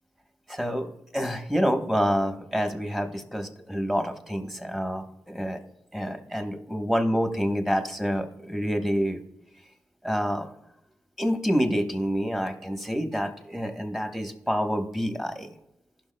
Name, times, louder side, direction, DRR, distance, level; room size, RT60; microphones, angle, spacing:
voice 1, 0.5-5.6 5.9-9.2 10.0-10.5 11.2-15.5, equal, 5° right, 6 dB, 1.1 m, -27 dB
16.0 x 5.8 x 2.2 m, 0.86 s
cardioid pair, 60°, 6 cm